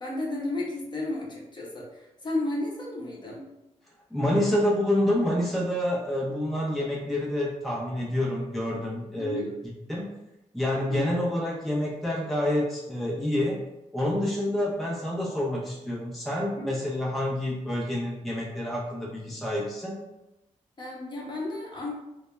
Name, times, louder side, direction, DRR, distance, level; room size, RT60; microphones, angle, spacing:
voice 1, 0.0-3.5 9.2-9.5 10.9-11.1 16.6-16.7 20.8-21.9, left 2 dB, 35° left, -3 dB, 0.7 m, -33 dB
voice 2, 4.1-10.1 10.5-13.6 13.9-20.0, left 1 dB, ahead, -4 dB, 0.5 m, -28 dB
2.2 x 2.1 x 3.0 m, 0.92 s
cardioid pair, 80°, 13 cm